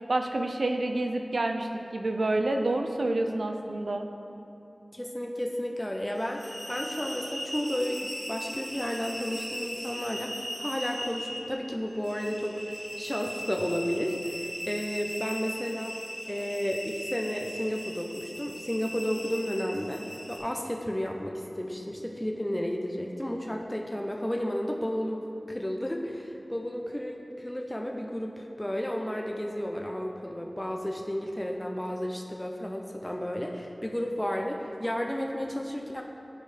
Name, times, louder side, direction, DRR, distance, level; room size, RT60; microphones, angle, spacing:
voice 1, 0.1-4.1, right 2 dB, 80° right, 4 dB, 0.4 m, -28 dB
voice 2, 4.9-15.9 16.3-20.0 20.3-36.0, equal, 15° left, 1 dB, 0.6 m, -32 dB
sound 1, 6.1-20.4, equal, 30° right, 1.7 m, -39 dB
11.0 x 4.5 x 3.3 m, 2.9 s
wide cardioid pair, 50°, 0 cm